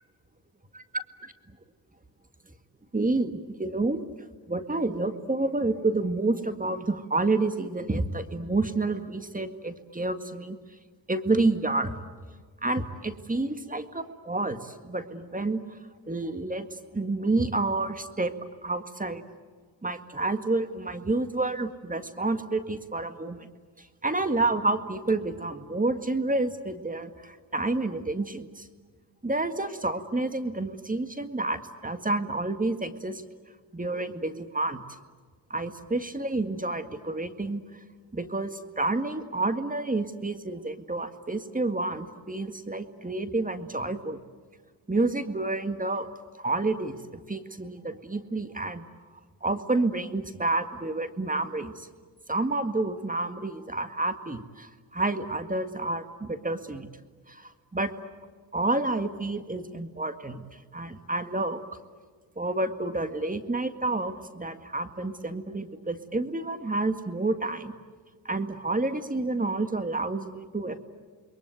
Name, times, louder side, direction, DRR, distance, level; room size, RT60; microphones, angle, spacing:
voice 1, 2.9-4.1 4.5-10.6 11.1-11.9 12.6-15.6 16.1-16.7 16.9-18.3 18.6-19.2 19.8-23.5 23.8-28.7 29.2-33.2 33.7-34.8 35.5-37.6 38.1-44.2 44.9-46.1 46.4-48.8 49.4-51.9 52.3-56.9 57.3-57.9 58.5-60.5 60.7-61.6 62.4-67.7 68.3-70.8, right 2 dB, 20° right, 9 dB, 2.0 m, -29 dB
28.5 x 22.0 x 9.3 m, 1.5 s
cardioid pair, 65°, 44 cm